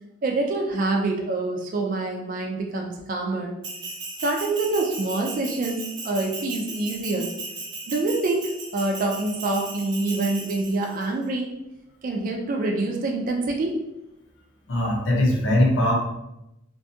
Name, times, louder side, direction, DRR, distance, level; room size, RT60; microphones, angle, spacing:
voice 1, 0.2-3.6 4.2-7.3 7.9-11.5 12.0-13.8, right 2 dB, 45° right, 1 dB, 0.3 m, -26 dB
Bell, 3.6-11.1, right 3 dB, 70° right, 0.8 m, -36 dB
voice 2, 14.7-15.9, left 1 dB, 90° left, -1 dB, 0.7 m, -20 dB
2.5 x 2.3 x 2.6 m, 0.90 s
head